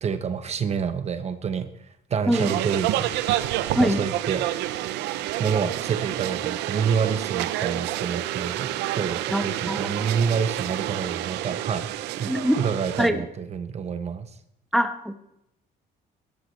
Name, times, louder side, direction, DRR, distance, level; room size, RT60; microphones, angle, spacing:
voice 1, 0.0-1.7 2.1-3.1 3.8-4.5 5.4-11.9 12.2-12.3 12.6-14.3, right 6 dB, 40° right, 10 dB, 0.9 m, -28 dB
sound 1, 2.3-13.1, right 14 dB, 90° right, 0.6 m, -29 dB
voice 2, 9.3-10.1 12.3-12.5 13.0-13.2 14.7-15.1, equal, ahead, 7 dB, 1.1 m, -23 dB
17.0 x 12.5 x 3.2 m, 0.80 s
cardioid pair, 110°, 17 cm